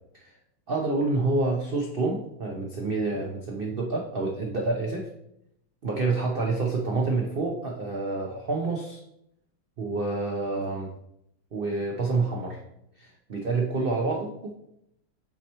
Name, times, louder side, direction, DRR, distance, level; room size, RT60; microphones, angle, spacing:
voice 1, 0.7-5.1 5.8-9.0 9.8-10.9 11.5-12.6 13.0-14.5, right 3 dB, 75° right, 0 dB, 0.5 m, -28 dB
7.5 x 2.9 x 4.3 m, 0.77 s
omnidirectional pair, 2.0 m